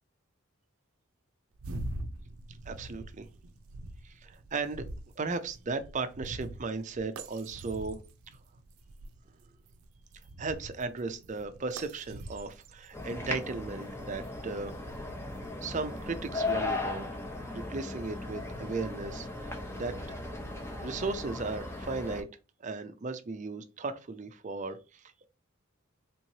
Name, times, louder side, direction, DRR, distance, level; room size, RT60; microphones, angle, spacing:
sound 1, 1.5-16.7, right 1 dB, 90° right, 0.5 m, -45 dB
voice 1, 2.7-3.3 4.0-4.8 5.2-8.0 10.4-14.7 15.6-17.0 17.7-19.9 20.8-22.3 22.6-25.2, right 3 dB, 35° right, 0.4 m, -36 dB
sound 2, 12.9-22.2, left 2 dB, 10° left, 0.6 m, -37 dB
3.7 x 3.0 x 2.7 m
head